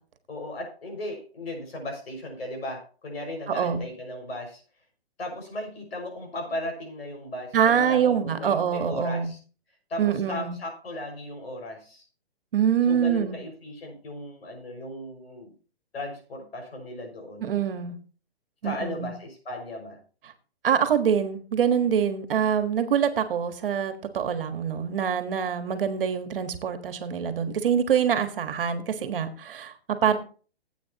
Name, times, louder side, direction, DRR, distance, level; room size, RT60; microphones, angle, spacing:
voice 1, 0.3-4.6 5.2-9.4 9.9-12.0 12.9-15.5 15.9-17.5 18.6-20.0, left 1 dB, 75° left, 3 dB, 5.9 m, -36 dB
voice 2, 7.5-9.3 10.0-10.6 12.5-13.4 17.4-18.0 18.6-19.1 20.6-29.7 30.0-30.2, right 8 dB, 60° right, 9 dB, 1.6 m, -25 dB
16.0 x 8.5 x 2.9 m, 0.39 s
hypercardioid pair, 150°, 31 cm